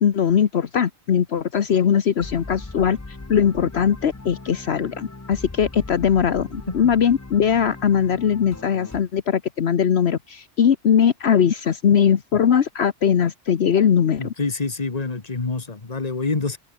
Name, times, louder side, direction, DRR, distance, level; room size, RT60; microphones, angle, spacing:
voice 1, 0.0-3.0 3.3-14.3, left 8 dB, 65° left, 1.2 m, -20 dB
sound 1, 2.2-9.0, left 2 dB, 15° left, 0.8 m, -39 dB
voice 2, 14.2-16.6, left 3 dB, 35° left, 1.7 m, -26 dB
omnidirectional pair, 1.2 m